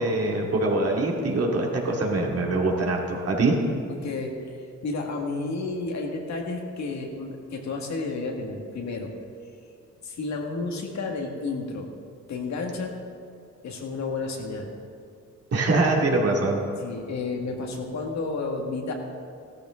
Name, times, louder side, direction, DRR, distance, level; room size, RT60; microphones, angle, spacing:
voice 1, 0.0-3.6 15.5-16.6, right 2 dB, 55° right, -1 dB, 2.6 m, -23 dB
voice 2, 3.9-4.6 4.8-9.1 10.0-11.9 12.3-13.0 13.6-14.7 16.8-18.9, left 3 dB, 65° left, 1 dB, 2.1 m, -31 dB
15.0 x 13.0 x 3.9 m, 2.4 s
cardioid pair, 90°, 30 cm